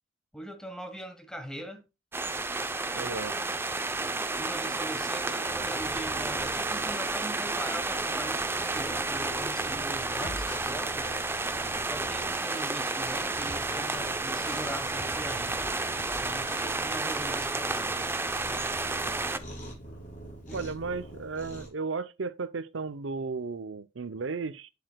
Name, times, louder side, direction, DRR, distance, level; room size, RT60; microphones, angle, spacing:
voice 1, 0.3-1.9 3.0-3.1 3.9-11.1 11.8-15.7 16.2-18.1 20.5-20.6, right 1 dB, 5° left, 1.3 m, -41 dB
sound 1, 2.1-19.4, right 3 dB, 10° right, 0.5 m, -31 dB
voice 2, 2.9-3.3 20.5-24.7, right 4 dB, 80° right, 0.6 m, -34 dB
Cat, 5.5-21.7, right 1 dB, 45° left, 4.9 m, -46 dB
sound 2, 9.9-10.7 11.0-11.7 12.2-13.1 13.5-16.7 17.0-17.1, left 2 dB, 90° left, 1.2 m, -46 dB
8.5 x 7.7 x 2.2 m
head